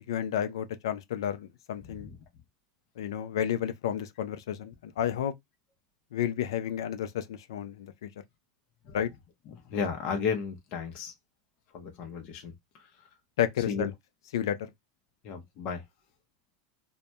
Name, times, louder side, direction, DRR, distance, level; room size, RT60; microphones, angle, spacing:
voice 1, 0.0-2.1 3.0-5.3 6.1-8.1 8.9-9.1 13.4-13.9 14.3-14.7, left 10 dB, 85° left, 0.4 m, -31 dB
voice 2, 9.5-11.1 11.7-13.1 13.7-13.9 15.2-15.8, left 6 dB, 45° left, 0.6 m, -34 dB
2.1 x 2.1 x 2.7 m
supercardioid pair, 130°, 2 cm